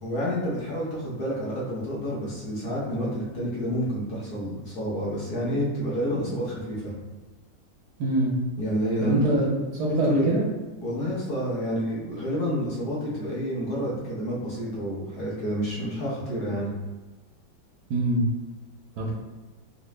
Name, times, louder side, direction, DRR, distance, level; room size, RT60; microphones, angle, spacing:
voice 1, 0.0-6.9 8.6-9.6 9.9-10.2 10.8-16.7, equal, 55° left, -7 dB, 1.4 m, -29 dB
voice 2, 8.0-8.3 9.0-9.5 9.8-10.4 17.9-18.2 19.0-19.1, right 2 dB, 70° right, -3 dB, 1.0 m, -24 dB
3.8 x 2.3 x 3.1 m, 1.3 s
omnidirectional pair, 2.2 m